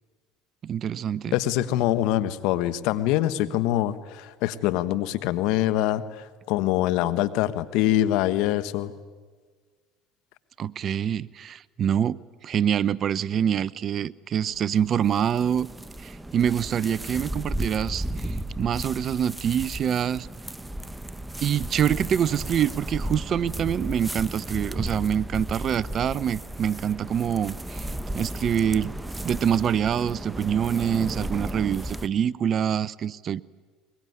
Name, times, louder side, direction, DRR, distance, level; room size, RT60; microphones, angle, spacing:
voice 1, 0.6-1.3 10.6-15.7 16.0-20.3 21.4-27.9 28.1-28.9 29.2-33.4, right 9 dB, 45° right, 0.7 m, -25 dB
voice 2, 1.3-8.9, left 13 dB, 70° left, 1.3 m, -24 dB
sound 1, 14.3-32.1, right 1 dB, 10° right, 1.1 m, -34 dB
22.5 x 22.5 x 9.6 m
hypercardioid pair, 80°, 0 cm